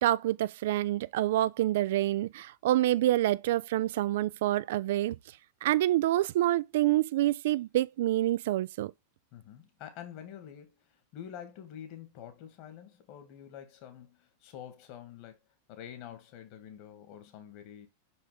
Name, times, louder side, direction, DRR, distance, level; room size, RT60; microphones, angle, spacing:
voice 1, 0.0-5.2 5.6-8.9, right 14 dB, 55° right, 0.3 m, -27 dB
voice 2, 9.3-15.4 15.7-17.9, left 9 dB, 45° left, 2.0 m, -47 dB
6.3 x 5.4 x 3.4 m
figure-of-eight pair, 90°, 0 cm